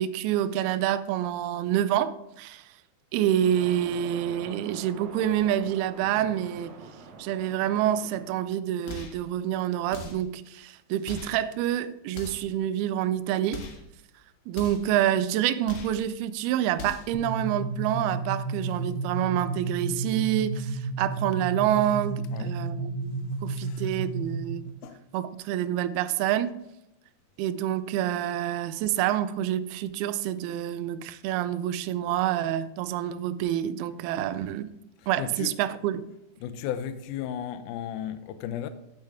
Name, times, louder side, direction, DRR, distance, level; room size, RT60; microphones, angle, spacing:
voice 1, 0.0-2.6 3.1-6.7 7.2-13.6 14.5-24.6 25.1-26.6 27.4-34.7 35.1-36.0, right 11 dB, 85° right, 2.5 m, -27 dB
sound 1, 3.4-8.4, right 4 dB, 55° right, 2.4 m, -44 dB
sound 2, 8.9-9.2 9.9-10.3 11.0-11.4 12.1-12.5 13.5-13.9 14.5-14.9 15.6-16.0 16.7-17.2, left 4 dB, 70° left, 3.4 m, -40 dB
sound 3, 17.1-24.7, right 3 dB, 15° left, 1.5 m, -32 dB
voice 2, 22.3-22.7 23.6-23.9 24.8-25.0 35.2-35.6 36.4-38.7, left 10 dB, 90° left, 1.8 m, -35 dB
10.0 x 8.9 x 3.6 m
omnidirectional pair, 4.5 m